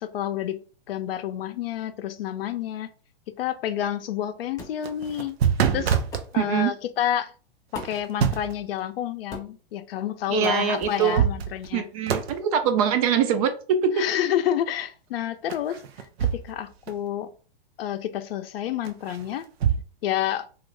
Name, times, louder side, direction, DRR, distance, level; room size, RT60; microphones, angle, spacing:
voice 1, 0.0-2.9 3.4-5.4 5.7-6.0 6.3-7.3 7.7-11.9 14.0-17.3 17.8-19.5 20.0-20.4, left 11 dB, 70° left, 0.5 m, -29 dB
sound 1, 4.6-4.8 6.1-6.3 7.7-8.1 9.3-9.6 10.8-11.0, left 3 dB, 10° left, 0.6 m, -39 dB
sound 2, 4.7-6.3 7.8-8.6 10.4-10.5 10.9-11.8 12.1-12.4 15.5-16.6 16.9-17.0 18.8-19.8, right 8 dB, 85° right, 0.6 m, -25 dB
voice 2, 6.3-6.7 10.3-11.2 11.7-14.0, right 8 dB, 35° right, 0.4 m, -23 dB
2.6 x 2.4 x 3.1 m
hypercardioid pair, 140°, 30 cm